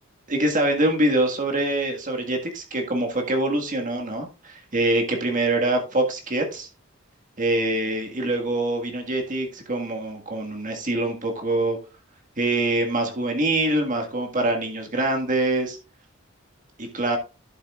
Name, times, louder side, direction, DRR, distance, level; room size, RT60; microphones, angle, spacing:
voice 1, 0.3-6.7 7.4-11.8 12.4-15.8 16.8-17.2, right 2 dB, 40° right, 1.7 m, -24 dB
11.0 x 7.4 x 2.4 m
head